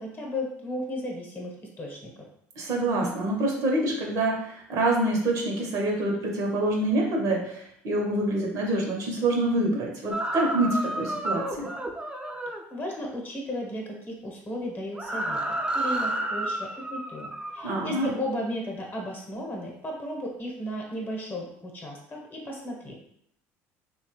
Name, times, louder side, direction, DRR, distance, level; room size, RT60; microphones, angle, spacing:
voice 1, 0.0-2.2 12.7-23.0, left 1 dB, 30° left, -1 dB, 0.9 m, -35 dB
voice 2, 2.6-11.7 17.6-18.1, right 1 dB, 60° right, 0 dB, 0.8 m, -26 dB
sound 1, 10.1-12.6 14.9-17.8, right 1 dB, 15° right, 0.4 m, -31 dB
2.9 x 2.2 x 3.0 m, 0.71 s
supercardioid pair, 85°, 6 cm